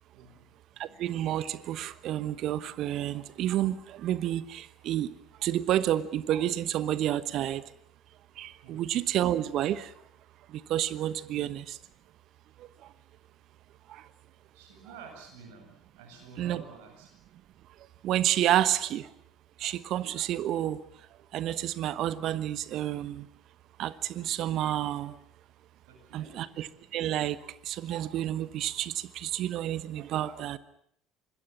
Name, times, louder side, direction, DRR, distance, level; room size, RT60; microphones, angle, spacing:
voice 1, 0.1-0.5 8.6-8.8 11.2-11.4 13.0-13.1 14.5-17.1 25.9-26.4, right 5 dB, 70° right, 3 dB, 8.0 m, -50 dB
voice 2, 0.8-5.1 5.4-7.6 8.4-9.9 10.7-11.8 16.4-16.6 18.0-19.1 19.6-20.8 21.3-23.3 23.8-25.1 26.1-26.7 26.9-27.4 27.7-30.6, right 12 dB, 55° right, 16 dB, 1.1 m, -29 dB
25.5 x 21.5 x 7.2 m, 0.69 s
figure-of-eight pair, 60°, 0 cm